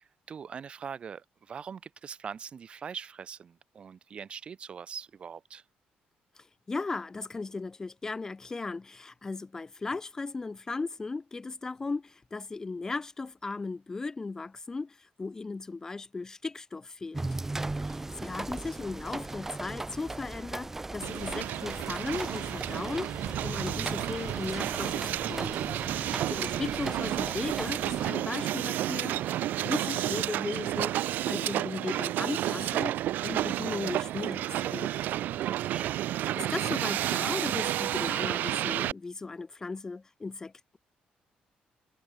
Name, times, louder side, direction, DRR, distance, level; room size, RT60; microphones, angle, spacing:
voice 1, 0.0-5.6 17.8-18.2 35.2-36.0, right 7 dB, 35° right, 7.6 m, -43 dB
voice 2, 6.4-17.3 17.8-30.9 31.3-33.0 33.2-34.9 36.4-40.8, left 3 dB, 20° left, 2.2 m, -37 dB
sound 1, 17.1-28.1, right 2 dB, 10° right, 1.7 m, -38 dB
Hiss, 21.0-38.9, right 13 dB, 75° right, 0.5 m, -31 dB
cardioid pair, 165°, 3 cm